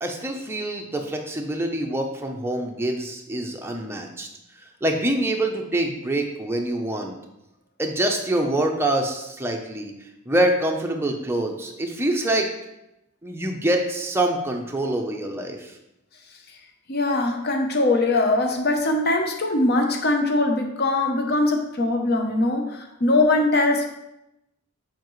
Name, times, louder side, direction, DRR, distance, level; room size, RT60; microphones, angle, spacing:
voice 1, 0.0-4.3 4.8-7.1 7.8-9.9 10.3-12.5 13.2-15.7, right 1 dB, 10° right, 2 dB, 0.7 m, -25 dB
voice 2, 16.9-23.8, left 2 dB, 50° left, 3 dB, 0.7 m, -21 dB
7.0 x 5.1 x 3.1 m, 0.88 s
head